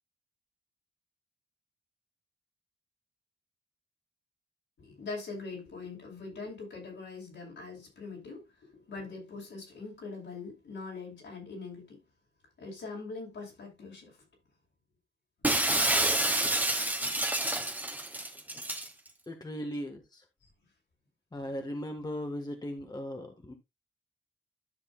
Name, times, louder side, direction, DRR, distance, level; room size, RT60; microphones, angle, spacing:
voice 1, 4.8-12.0 12.6-14.2, left 4 dB, 75° left, 5.8 m, -42 dB
Shatter, 15.4-18.9, right 1 dB, 10° right, 1.4 m, -28 dB
voice 2, 19.3-20.2 21.3-23.5, equal, 20° left, 1.6 m, -38 dB
13.0 x 6.4 x 2.4 m
wide cardioid pair, 115°, 20 cm